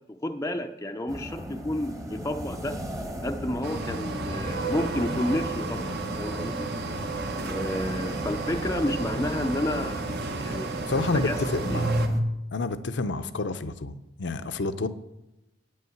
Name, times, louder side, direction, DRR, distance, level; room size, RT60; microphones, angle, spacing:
voice 1, 0.1-2.8 3.2-6.7 7.4-11.8, left 1 dB, 15° left, 4 dB, 0.5 m, -31 dB
sound 1, 1.1-12.2, equal, 15° right, 1.0 m, -35 dB
sound 2, 3.6-12.1, right 3 dB, 55° right, 1.0 m, -33 dB
voice 2, 10.9-12.0 12.5-14.9, left 3 dB, 65° left, 12 dB, 0.6 m, -29 dB
9.6 x 5.6 x 7.8 m, 0.91 s
head